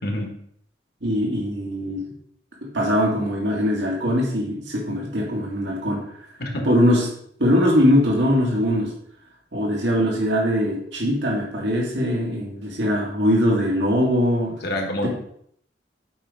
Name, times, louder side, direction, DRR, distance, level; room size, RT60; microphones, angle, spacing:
voice 1, 0.0-0.3 6.4-6.7 14.6-15.1, left 1 dB, 60° left, 2 dB, 1.5 m, -27 dB
voice 2, 1.0-2.0 2.6-6.0 6.6-7.1 7.4-8.9 9.5-14.5 15.0-15.1, equal, 80° right, -3 dB, 2.0 m, -21 dB
8.4 x 5.2 x 3.6 m, 0.66 s
head